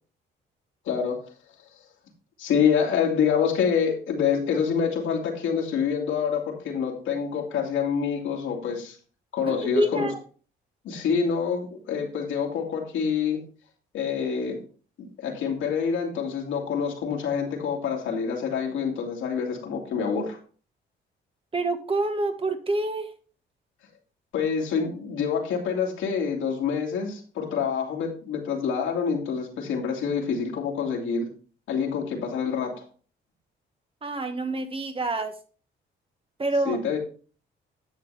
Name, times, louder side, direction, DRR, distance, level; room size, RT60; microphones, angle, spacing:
voice 1, 0.8-1.2 2.4-9.0 9.3-10.1 10.8-13.4 13.9-14.6 15.2-20.4 24.3-31.3 31.7-32.8 36.7-37.0, left 6 dB, 85° left, 0 dB, 2.4 m, -26 dB
voice 2, 9.5-10.2 21.5-23.1 34.0-35.3 36.4-36.8, right 2 dB, 25° right, 7 dB, 1.4 m, -27 dB
10.5 x 7.0 x 3.4 m, 0.40 s
cardioid pair, 90°, 20 cm